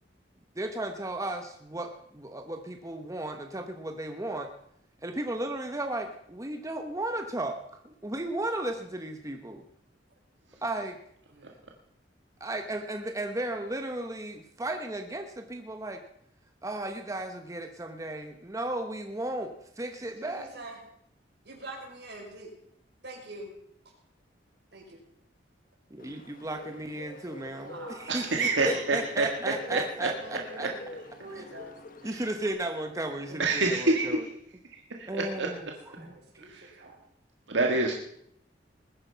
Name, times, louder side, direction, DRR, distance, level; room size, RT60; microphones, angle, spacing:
voice 1, 0.5-4.5 5.0-9.7 10.6-11.0 12.4-16.0 16.6-20.5 25.9-30.7 31.3-31.4 32.0-34.2 35.1-35.6 36.0-36.1, right 1 dB, 20° right, 5 dB, 1.0 m, -35 dB
voice 2, 20.2-20.8 21.4-22.5 23.0-23.5 24.7-25.0 27.4-28.6 28.9-29.1 30.1-30.9 31.2-31.7 33.3-33.6 33.9-34.0 35.5-37.0, right 2 dB, 65° right, -1 dB, 5.4 m, -45 dB
Bird, 26.0-32.5, left 2 dB, 50° left, 1.3 m, -47 dB
voice 3, 28.1-30.1 30.6-30.7 32.1-32.2 33.4-34.3 34.7-35.5 36.4-36.8 37.5-37.9, right 3 dB, 85° right, 1 dB, 1.6 m, -28 dB
20.5 x 9.8 x 5.6 m, 0.71 s
head